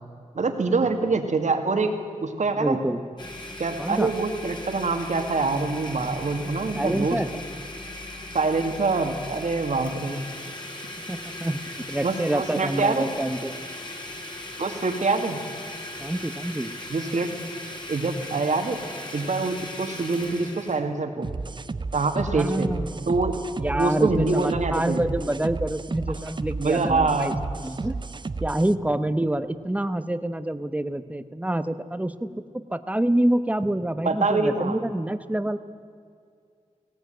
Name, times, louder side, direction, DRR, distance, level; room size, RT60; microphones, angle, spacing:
voice 1, 0.3-2.0 2.2-2.8 3.6-7.2 8.3-10.2 12.0-13.1 14.6-15.4 16.9-17.4 17.9-18.8 19.1-21.3 21.9-22.7 23.1-23.4 23.8-25.0 26.6-27.4 34.0-34.8, right 3 dB, 65° right, 5 dB, 2.2 m, -25 dB
voice 2, 2.6-3.0 3.8-4.1 6.7-7.3 11.1-13.5 16.0-16.7 22.3-23.1 23.6-27.3 27.6-28.0 28.4-35.6, right 1 dB, 10° right, 12 dB, 0.9 m, -27 dB
Domestic sounds home sounds, 3.2-20.8, left 1 dB, 35° left, 3.2 m, -38 dB
sound 1, 21.2-28.7, right 3 dB, 35° right, 0.6 m, -33 dB
18.5 x 17.5 x 9.2 m, 2.3 s
wide cardioid pair, 115°, 13 cm